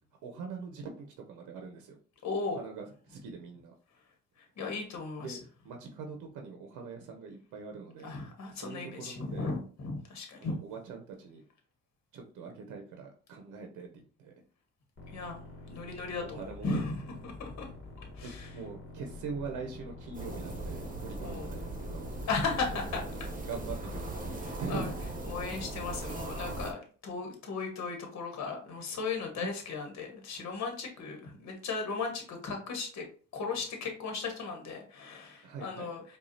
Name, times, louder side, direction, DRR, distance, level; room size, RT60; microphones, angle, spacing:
voice 1, 0.2-2.0 2.5-3.7 5.2-8.1 8.5-9.5 10.4-11.4 12.1-14.3 16.3-16.7 18.2-22.1 23.0-23.1 23.3-24.9 28.8-28.9 29.3-29.5 35.4-35.9, right 5 dB, 90° right, 3 dB, 0.7 m, -43 dB
voice 2, 2.2-2.6 4.4-5.4 8.0-10.6 15.1-17.7 18.0-18.5 21.2-21.5 22.3-23.3 24.4-24.9 25.3-33.0 33.3-36.0, left 4 dB, 60° left, 3 dB, 1.2 m, -36 dB
sound 1, 15.0-22.9, left 2 dB, 40° left, 1.3 m, -47 dB
sound 2, 20.1-26.7, right 2 dB, 25° right, 1.1 m, -39 dB
4.9 x 2.4 x 2.7 m, 0.40 s
cardioid pair, 90°, 30 cm